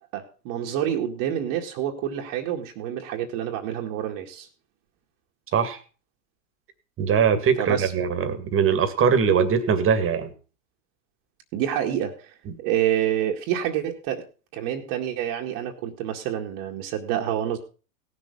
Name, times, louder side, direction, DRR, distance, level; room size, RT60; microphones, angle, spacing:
voice 1, 0.1-4.5 7.6-7.9 11.5-14.2 14.5-17.6, right 11 dB, 50° right, 1 dB, 2.0 m, -28 dB
voice 2, 7.0-10.3, right 6 dB, 30° right, 9 dB, 2.1 m, -21 dB
17.0 x 6.8 x 5.4 m, 0.36 s
hypercardioid pair, 115°, 43 cm